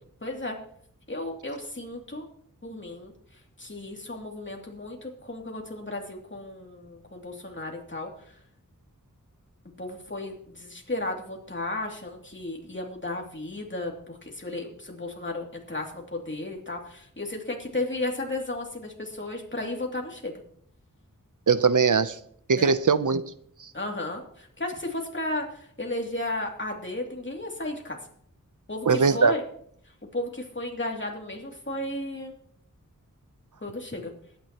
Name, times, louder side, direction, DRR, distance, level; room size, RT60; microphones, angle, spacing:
voice 1, 0.2-0.6 1.1-2.3 2.6-8.4 9.8-20.4 22.6-22.7 23.7-28.0 28.7-29.4 30.1-32.3 33.6-34.1, left 2 dB, 35° left, 2.6 m, -34 dB
voice 2, 21.5-22.2 22.5-23.3 23.6-23.7 28.9-29.3, right 5 dB, 65° right, 0.7 m, -21 dB
21.0 x 9.4 x 2.9 m
wide cardioid pair, 50°, 33 cm